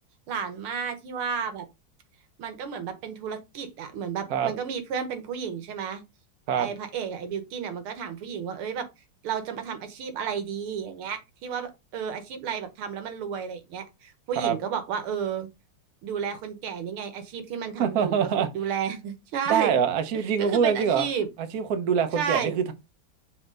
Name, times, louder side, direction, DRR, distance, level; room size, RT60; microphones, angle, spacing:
voice 1, 0.3-1.6 2.4-6.0 6.6-8.9 9.2-15.5 16.0-19.8 20.1-21.3 22.2-22.6, right 7 dB, 75° right, 2.0 m, -32 dB
voice 2, 17.8-18.5 19.5-21.1 21.5-22.7, right 7 dB, 55° right, 1.1 m, -24 dB
6.5 x 4.4 x 3.8 m
omnidirectional pair, 2.4 m